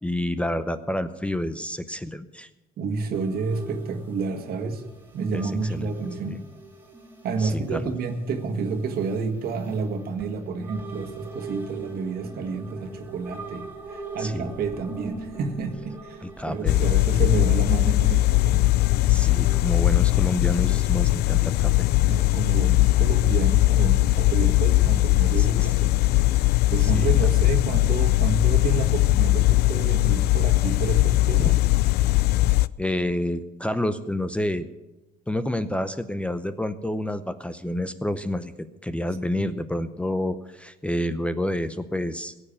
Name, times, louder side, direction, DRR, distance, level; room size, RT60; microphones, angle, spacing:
voice 1, 0.0-2.5 5.3-5.9 6.3-6.4 7.4-7.9 14.2-14.5 16.2-16.8 19.1-21.9 25.4-25.7 26.8-27.1 31.4-31.5 32.8-34.7 35.3-38.5 38.8-42.3, left 1 dB, 5° left, 12 dB, 0.6 m, -29 dB
voice 2, 2.8-4.8 5.1-6.4 7.2-13.7 13.9-18.6 22.0-26.0 26.4-31.6 39.4-39.7, right 4 dB, 65° right, 5 dB, 1.8 m, -30 dB
sound 1, 3.1-20.9, right 3 dB, 10° right, 2.6 m, -42 dB
sound 2, 16.7-32.7, left 18 dB, 75° left, 0.4 m, -20 dB
17.0 x 7.2 x 8.7 m, 1.0 s
cardioid pair, 110°, 17 cm